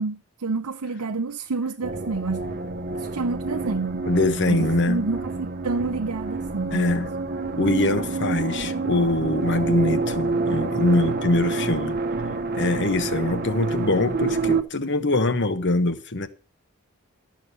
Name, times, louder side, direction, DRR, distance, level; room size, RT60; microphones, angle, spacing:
voice 1, 0.0-2.5 2.9-4.1 4.5-7.0, right 3 dB, 90° right, 0.7 m, -29 dB
sound 1, 1.8-14.6, right 3 dB, 45° right, 1.0 m, -28 dB
voice 2, 4.1-5.0 6.7-7.1 7.6-12.0 12.5-16.3, left 2 dB, 55° left, 1.2 m, -23 dB
13.0 x 6.5 x 6.7 m
head